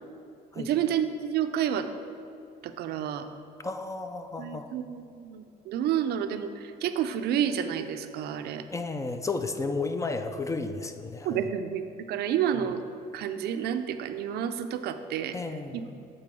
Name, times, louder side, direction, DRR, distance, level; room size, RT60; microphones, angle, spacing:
voice 1, 0.6-1.9 2.6-3.3 4.4-8.7 11.2-12.8 13.1-15.4 15.7-15.9, right 9 dB, 70° right, 9 dB, 0.5 m, -30 dB
voice 2, 3.6-4.7 8.7-11.5 15.3-15.9, left 3 dB, 20° left, 8 dB, 0.4 m, -33 dB
7.8 x 4.0 x 6.1 m, 2.7 s
cardioid pair, 110°, 17 cm